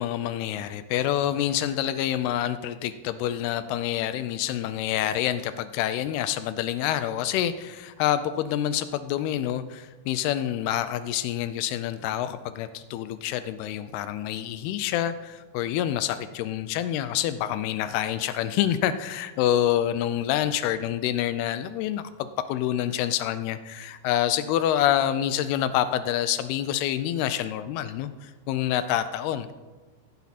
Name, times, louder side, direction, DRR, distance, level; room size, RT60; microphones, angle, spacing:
voice 1, 0.0-29.5, left 11 dB, 85° left, 12 dB, 2.4 m, -27 dB
16.0 x 8.3 x 4.1 m, 1.2 s
omnidirectional pair, 4.7 m